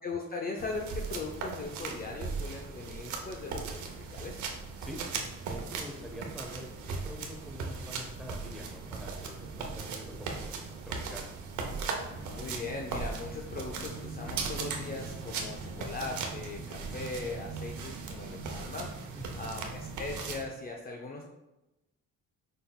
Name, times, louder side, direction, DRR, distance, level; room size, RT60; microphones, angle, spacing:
voice 1, 0.0-3.7 4.1-4.4 12.3-21.3, left 3 dB, 30° left, 1 dB, 0.5 m, -39 dB
sound 1, 0.6-20.4, right 4 dB, 75° right, 0.8 m, -38 dB
voice 2, 5.4-10.6 10.9-11.3 19.1-19.6, equal, ahead, 2 dB, 0.8 m, -45 dB
5.2 x 3.8 x 2.3 m, 0.99 s
cardioid pair, 90°, 30 cm